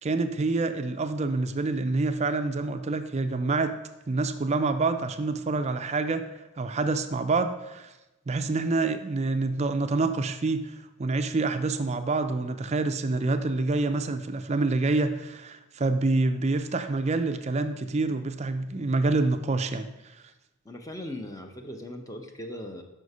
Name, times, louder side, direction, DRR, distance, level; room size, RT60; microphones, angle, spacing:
voice 1, 0.0-3.7 4.1-6.3 6.6-7.9 8.3-10.7 11.0-19.9, right 3 dB, 30° right, 8 dB, 0.4 m, -27 dB
voice 2, 20.6-22.8, left 1 dB, 15° left, 5 dB, 0.6 m, -39 dB
6.3 x 5.7 x 5.4 m, 1.0 s
head